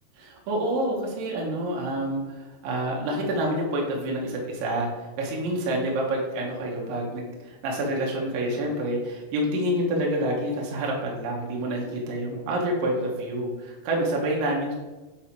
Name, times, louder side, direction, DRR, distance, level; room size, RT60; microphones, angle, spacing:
voice 1, 0.2-4.9 5.2-14.7, right 1 dB, 70° right, -1 dB, 2.5 m, -28 dB
5.6 x 5.3 x 4.4 m, 1.2 s
omnidirectional pair, 4.7 m